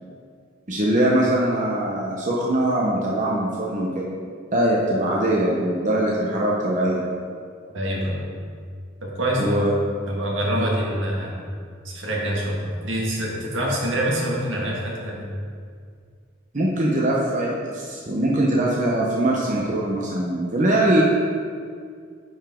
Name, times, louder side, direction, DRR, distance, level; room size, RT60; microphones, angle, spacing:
voice 1, 0.7-4.1 4.5-7.1 9.4-9.7 10.5-10.7 16.5-21.0, right 1 dB, 40° right, -4 dB, 0.8 m, -22 dB
voice 2, 7.7-8.3 9.0-9.7 10.1-11.4 11.8-15.3, right 1 dB, 75° right, -3 dB, 1.7 m, -25 dB
10.0 x 5.3 x 3.7 m, 2.2 s
head